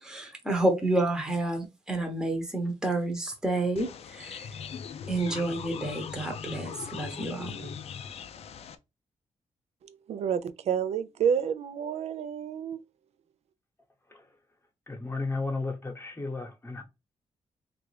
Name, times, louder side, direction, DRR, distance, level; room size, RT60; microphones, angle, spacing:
voice 1, 0.0-4.4 5.1-7.7, right 2 dB, 5° right, 0.8 m, -29 dB
sound 1, 3.8-8.8, left 7 dB, 65° left, 0.4 m, -40 dB
voice 2, 9.8-12.8, right 7 dB, 70° right, 0.4 m, -29 dB
voice 3, 14.9-16.8, left 3 dB, 20° left, 1.0 m, -34 dB
3.3 x 2.5 x 3.2 m
cardioid pair, 115°, 11 cm